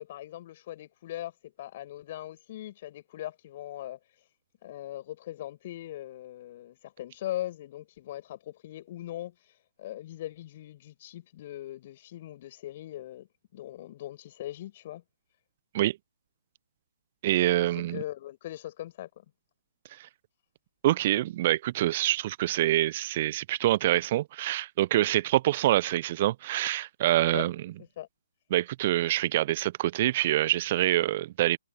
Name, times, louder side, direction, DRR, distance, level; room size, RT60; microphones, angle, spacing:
voice 1, 0.0-4.0 4.6-13.3 13.5-15.0 17.7-19.2 27.3-27.5 28.0-28.1, left 13 dB, 35° left, 6.9 m, -40 dB
voice 2, 17.2-18.0 20.8-27.5 28.5-31.6, right 14 dB, 35° right, 0.9 m, -25 dB
figure-of-eight pair, 135°, 0 cm